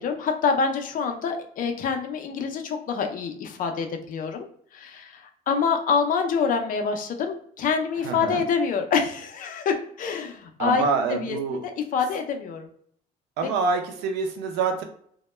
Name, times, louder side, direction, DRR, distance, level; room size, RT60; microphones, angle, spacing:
voice 1, 0.0-4.5 4.7-10.8 11.2-11.6 11.9-12.7, left 5 dB, 55° left, 4 dB, 0.5 m, -26 dB
voice 2, 8.0-8.4 10.6-11.6 13.4-14.8, right 4 dB, 90° right, 4 dB, 0.5 m, -26 dB
2.1 x 2.1 x 3.1 m, 0.62 s
cardioid pair, 110°, 17 cm